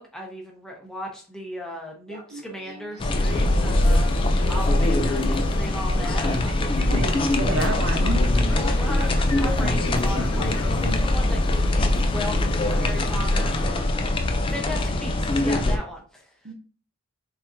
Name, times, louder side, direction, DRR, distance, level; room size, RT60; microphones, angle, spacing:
voice 1, 0.0-6.9 8.5-14.0 14.5-16.5, equal, 5° left, -1 dB, 0.8 m, -37 dB
Laughter, 2.1-3.4 4.0-5.1 5.5-10.5, right 2 dB, 85° right, 1.0 m, -44 dB
sound 1, 3.0-15.8, left 1 dB, 25° left, 0.3 m, -22 dB
sound 2, 3.2-13.7, left 2 dB, 60° left, 0.6 m, -36 dB
voice 2, 6.9-8.2 16.4-16.5, right 2 dB, 60° right, 4 dB, 0.8 m, -29 dB
4.0 x 3.5 x 2.6 m, 0.41 s
head